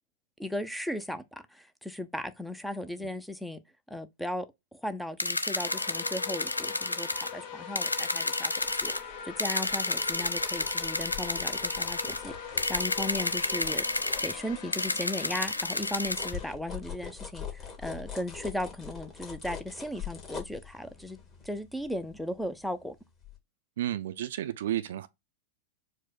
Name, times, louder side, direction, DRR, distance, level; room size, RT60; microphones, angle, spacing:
voice 1, 0.4-3.6 3.9-4.5 4.7-8.6 8.8-21.2 21.4-23.0, left 1 dB, ahead, 0.5 m, -36 dB
sound 1, 5.2-7.3 7.8-9.0 9.4-12.2 12.6-14.3 14.7-16.3, left 2 dB, 85° left, 0.3 m, -31 dB
sound 2, 5.6-16.6, left 7 dB, 50° left, 0.9 m, -42 dB
sound 3, 8.6-14.9 15.3-22.8 23.2-23.4, left 7 dB, 25° left, 1.4 m, -44 dB
voice 2, 23.8-25.1, right 12 dB, 60° right, 0.4 m, -32 dB
4.5 x 2.0 x 4.1 m
figure-of-eight pair, 95°, 0 cm